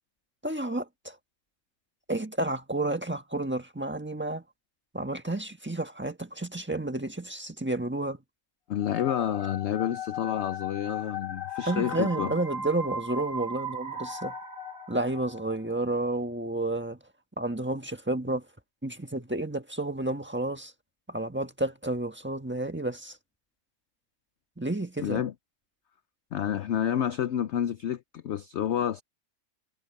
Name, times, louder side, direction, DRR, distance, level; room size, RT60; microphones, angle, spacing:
voice 1, 0.4-1.2 2.1-4.4 4.9-8.2 11.7-14.3 14.9-17.0 17.4-18.4 18.8-20.7 21.1-23.2 24.6-25.3, right 2 dB, 10° right, 1.2 m, -31 dB
voice 2, 8.7-12.4 25.0-25.3 26.3-29.0, left 10 dB, 70° left, 0.7 m, -29 dB
sound 1, 8.8-15.6, left 2 dB, 50° left, 3.5 m, -37 dB
omnidirectional pair, 1.7 m